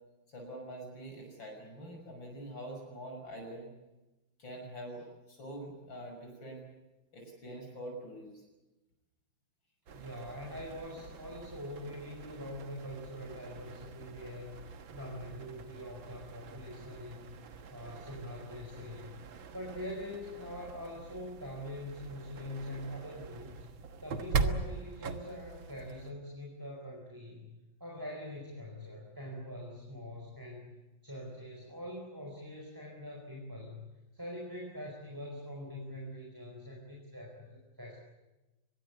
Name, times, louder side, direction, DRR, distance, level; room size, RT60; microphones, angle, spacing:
voice 1, 0.3-3.7 4.4-6.6 7.1-8.4, right 1 dB, 75° left, 2 dB, 6.7 m, -45 dB
voice 2, 9.9-17.4 17.7-19.1 19.5-23.6 24.0-27.5 27.8-30.8 31.0-33.8 34.1-38.0, left 1 dB, 10° right, -1 dB, 4.6 m, -44 dB
sound 1, 9.9-26.1, right 4 dB, 80° right, 2.2 m, -42 dB
24.5 x 22.0 x 8.3 m, 1.0 s
omnidirectional pair, 2.1 m